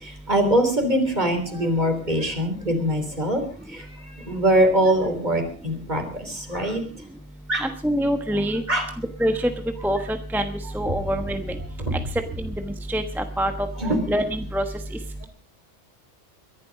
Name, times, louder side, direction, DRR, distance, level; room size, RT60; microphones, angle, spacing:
voice 1, 0.0-3.4 3.7-3.8 4.3-6.8 7.5-7.7 8.7-8.9 11.9-12.0 13.8-14.0, right 1 dB, 40° right, 6 dB, 3.6 m, -22 dB
voice 2, 7.6-8.6 9.2-9.5 9.8-10.5 10.7-11.5 12.4-12.5 12.9-13.5 14.1-14.6, equal, ahead, 7 dB, 1.1 m, -24 dB
22.5 x 11.5 x 5.1 m, 0.41 s
omnidirectional pair, 1.2 m